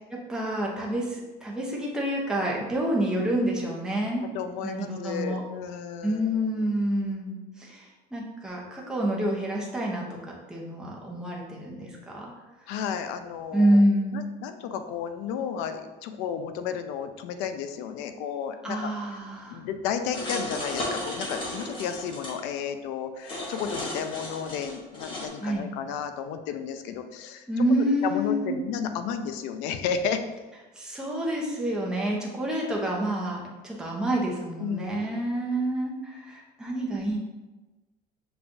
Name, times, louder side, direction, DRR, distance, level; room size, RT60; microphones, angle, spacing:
voice 1, 0.3-4.2 4.6-5.4 6.0-10.1 10.5-12.3 13.5-14.3 18.6-19.6 25.4-25.6 27.5-28.6 30.8-37.2, right 1 dB, 5° right, -3 dB, 0.6 m, -28 dB
voice 2, 4.3-6.2 6.6-6.7 12.7-13.8 14.1-18.9 19.5-27.4 28.0-30.2 34.6-35.2, left 7 dB, 70° left, 8 dB, 0.4 m, -33 dB
sound 1, 20.1-22.3 23.2-25.3, left 1 dB, 25° left, 0.8 m, -34 dB
6.8 x 2.3 x 2.6 m, 1.2 s
cardioid pair, 165°, 19 cm